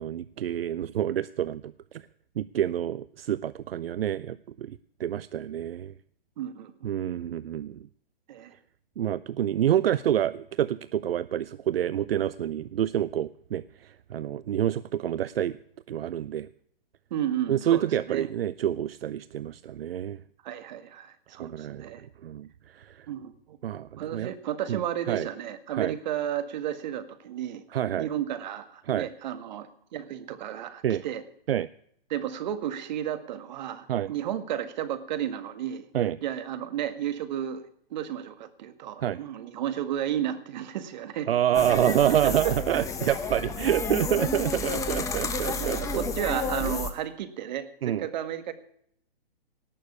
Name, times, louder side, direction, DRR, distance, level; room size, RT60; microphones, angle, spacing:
voice 1, 0.0-2.0 2.4-5.9 6.8-7.9 9.0-15.6 15.9-16.5 17.5-20.2 21.4-21.9 22.2-23.1 23.6-24.3 24.7-24.8 25.1-25.3 25.7-25.9 27.7-28.1 28.9-29.1 30.8-31.0 31.5-31.7 33.9-34.1 35.9-36.2 39.0-39.2 41.3-46.0 46.3-46.4 47.8-48.1, right 10 dB, 75° right, 18 dB, 0.6 m, -28 dB
voice 2, 6.4-6.9 8.3-8.5 17.1-18.3 20.4-22.0 23.1-23.6 24.0-27.6 27.9-31.2 32.1-35.8 36.2-37.6 37.9-41.3 41.7-41.9 42.2-42.3 42.7-42.8 44.1-44.3 45.2-48.5, right 10 dB, 50° right, 11 dB, 1.8 m, -33 dB
sound 1, 41.5-46.9, left 4 dB, 10° left, 1.0 m, -31 dB
18.5 x 6.6 x 8.4 m, 0.66 s
hypercardioid pair, 140°, 30 cm